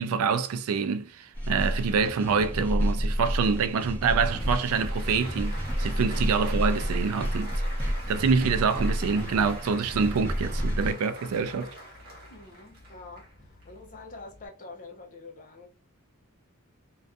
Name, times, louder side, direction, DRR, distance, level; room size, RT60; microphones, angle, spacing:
voice 1, 0.0-7.5 7.8-11.7, right 5 dB, 80° right, 0.3 m, -26 dB
sound 1, 1.3-10.9, equal, 10° left, 0.8 m, -30 dB
Applause, 3.9-14.5, equal, 45° right, 0.9 m, -45 dB
voice 2, 12.3-15.7, left 3 dB, 35° left, 0.6 m, -46 dB
2.5 x 2.3 x 2.3 m
head